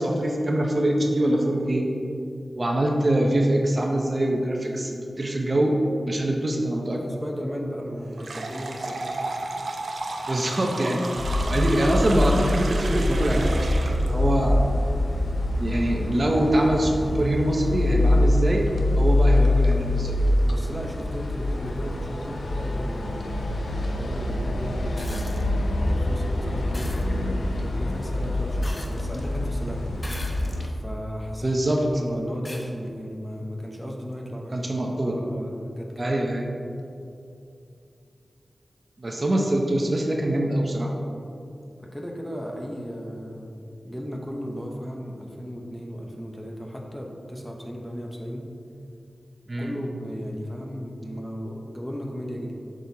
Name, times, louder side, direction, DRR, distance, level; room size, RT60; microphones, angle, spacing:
voice 1, 0.0-1.9 2.6-5.8 6.0-7.0 10.3-13.7 14.1-14.6 15.6-18.7 19.0-20.2 31.4-31.8 34.5-35.1 36.0-36.4 39.0-40.9 49.5-49.7, right 1 dB, 40° right, 0 dB, 0.8 m, -24 dB
voice 2, 6.9-9.2 20.5-23.4 23.9-25.6 25.8-30.0 30.8-34.7 35.0-36.2 41.8-43.6 43.8-48.5 49.6-52.5, equal, 5° left, 0 dB, 0.8 m, -35 dB
sound 1, 8.2-14.1, right 2 dB, 75° right, 0.6 m, -33 dB
sound 2, 11.2-30.7, left 1 dB, 85° left, 0.7 m, -25 dB
sound 3, 25.0-25.5 26.7-27.1 28.6-29.2 30.0-30.7 31.4-31.5 32.5-32.7 34.1-34.2, left 1 dB, 30° left, 0.8 m, -40 dB
8.0 x 6.2 x 2.8 m, 2.6 s
wide cardioid pair, 75°, 0 cm